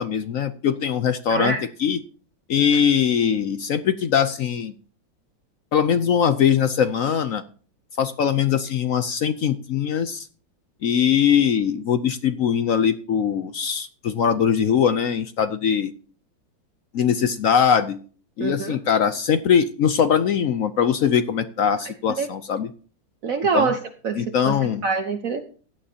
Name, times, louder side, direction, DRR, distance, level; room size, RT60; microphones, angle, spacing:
voice 1, 0.0-2.0 2.5-4.7 5.7-7.4 8.0-10.3 10.8-15.9 16.9-18.0 18.4-22.7 23.5-23.7 24.2-24.8, left 8 dB, 65° left, 11 dB, 0.8 m, -21 dB
voice 2, 1.3-1.6 18.4-18.8 22.2-22.3 23.2-25.4, right 4 dB, 55° right, 6 dB, 1.1 m, -25 dB
16.5 x 12.0 x 2.8 m, 0.42 s
omnidirectional pair, 2.1 m